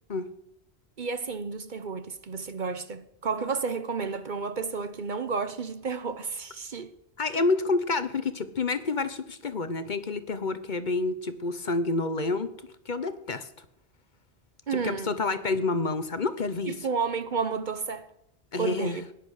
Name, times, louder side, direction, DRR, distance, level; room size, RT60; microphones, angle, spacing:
voice 1, 1.0-6.9 7.3-7.4 14.7-15.2 16.7-18.1 18.6-19.0, right 5 dB, 50° right, 0.9 m, -31 dB
voice 2, 7.2-12.6 12.8-13.5 14.7-16.9 18.5-19.0, left 3 dB, 45° left, 1.0 m, -28 dB
18.0 x 11.0 x 6.4 m
omnidirectional pair, 1.1 m